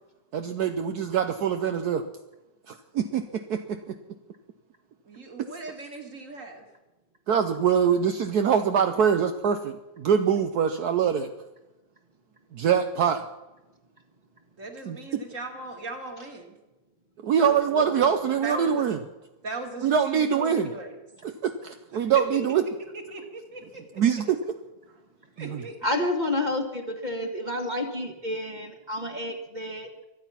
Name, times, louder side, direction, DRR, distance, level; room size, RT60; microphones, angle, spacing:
voice 1, 0.3-2.0 2.7-3.9 7.3-11.3 12.5-13.2 14.9-15.2 17.2-19.0 19.8-20.7 21.2-22.6 24.0-24.4 25.4-25.6, right 7 dB, 65° right, 7 dB, 1.3 m, -24 dB
voice 2, 5.0-6.6 14.6-16.6 17.4-18.8 19.4-21.0 21.9-22.4 22.9-23.8 25.4-25.8, right 2 dB, 45° right, 3 dB, 2.7 m, -38 dB
voice 3, 25.8-29.9, left 1 dB, 25° right, 4 dB, 1.6 m, -29 dB
24.0 x 9.3 x 5.8 m, 1.0 s
omnidirectional pair, 1.9 m